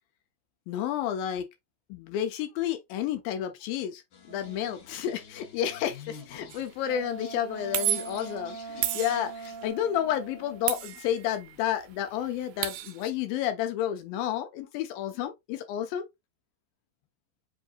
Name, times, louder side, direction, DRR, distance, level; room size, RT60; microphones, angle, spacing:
voice 1, 0.7-1.5 1.9-16.1, left 10 dB, 80° left, 2.2 m, -31 dB
sound 1, 4.1-9.7, left 6 dB, 60° left, 2.3 m, -50 dB
sound 2, 4.3-4.9 6.8-11.5 11.8-12.6, right 4 dB, 60° right, 1.5 m, -43 dB
sound 3, 6.5-6.7 7.7-8.3 8.8-9.7 10.7-11.6 11.9-12.0 12.2-13.1, right 12 dB, 80° right, 2.3 m, -32 dB
7.6 x 2.6 x 2.4 m
omnidirectional pair, 4.4 m